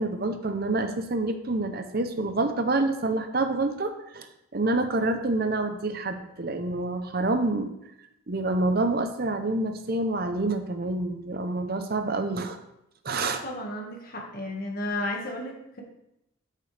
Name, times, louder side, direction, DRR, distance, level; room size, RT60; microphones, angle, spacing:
voice 1, 0.0-4.3 4.5-7.7 8.3-12.6 13.0-13.4, right 2 dB, 45° right, 7 dB, 0.7 m, -27 dB
voice 2, 13.1-15.8, left 1 dB, 45° left, 0 dB, 1.8 m, -33 dB
13.0 x 6.7 x 3.4 m, 0.83 s
head